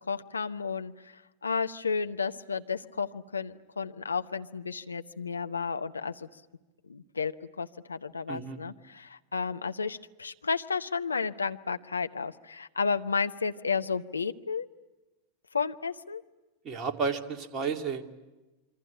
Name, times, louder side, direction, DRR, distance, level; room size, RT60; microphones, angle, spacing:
voice 1, 0.1-6.3 6.9-14.7 15.5-16.2, left 5 dB, 75° left, 9 dB, 0.9 m, -32 dB
voice 2, 8.3-8.6 16.6-18.0, right 5 dB, 30° right, 5 dB, 2.4 m, -32 dB
27.5 x 24.5 x 8.7 m, 1.1 s
figure-of-eight pair, 90°, 0 cm